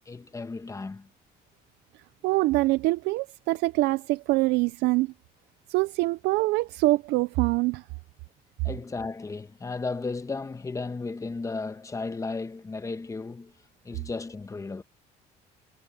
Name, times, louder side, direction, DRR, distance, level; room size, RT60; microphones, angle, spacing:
voice 1, 0.1-1.1 8.6-13.5 13.8-14.8, left 3 dB, 20° left, 1.3 m, -34 dB
voice 2, 2.2-5.1 5.7-7.8, right 20 dB, 85° right, 0.5 m, -24 dB
cardioid pair, 110°, 17 cm